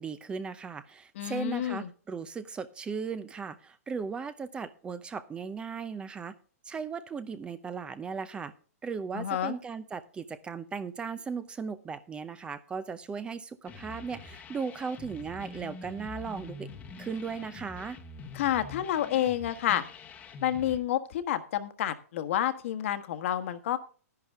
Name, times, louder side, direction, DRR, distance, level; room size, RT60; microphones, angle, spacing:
voice 1, 0.0-6.3 6.7-8.5 8.8-16.7 17.0-18.0, right 5 dB, 10° right, 14 dB, 0.6 m, -37 dB
voice 2, 1.1-1.9 9.1-9.5 18.3-19.8 20.4-23.8, left 11 dB, 55° left, 10 dB, 1.4 m, -29 dB
sound 1, 13.7-20.8, left 4 dB, 15° left, 1.1 m, -45 dB
11.0 x 10.5 x 3.5 m, 0.40 s
hypercardioid pair, 145°, 8 cm